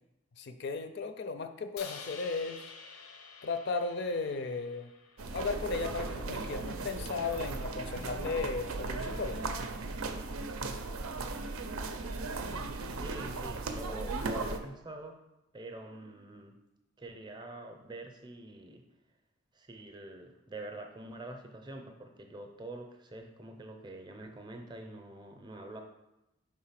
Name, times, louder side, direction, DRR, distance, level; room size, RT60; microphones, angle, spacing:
voice 1, 0.4-2.8 3.4-4.9 5.3-9.5, left 4 dB, 50° left, 8 dB, 0.4 m, -35 dB
Crash cymbal, 1.8-6.0, left 5 dB, 90° left, 0.7 m, -49 dB
sound 1, 5.2-14.6, right 3 dB, 90° right, 0.6 m, -37 dB
voice 2, 12.7-15.2 15.5-16.6 17.0-18.8 19.5-25.8, right 1 dB, 20° right, 4 dB, 0.6 m, -45 dB
5.0 x 3.7 x 5.7 m, 0.92 s
head